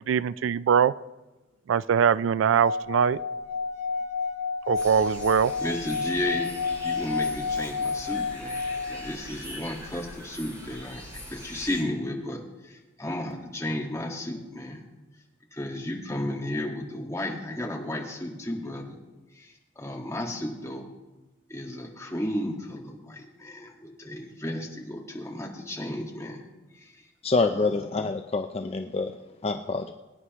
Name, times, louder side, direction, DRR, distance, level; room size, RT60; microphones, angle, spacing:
voice 1, 0.1-0.9 1.7-3.2 4.7-5.5, right 7 dB, 85° right, 18 dB, 0.3 m, -22 dB
Singing / Glass, 2.5-9.1, left 4 dB, 40° right, 0.8 m, -30 dB
sound 1, 4.7-11.8, equal, 20° right, 4.9 m, -42 dB
voice 2, 5.6-6.5 6.8-14.8 15.5-19.0 19.3-20.9 21.5-26.4 26.7-27.0, left 1 dB, 15° left, -2 dB, 1.8 m, -33 dB
voice 3, 27.2-29.1 29.4-29.9, left 3 dB, 30° left, 6 dB, 0.4 m, -26 dB
23.0 x 9.7 x 3.1 m, 1.1 s
head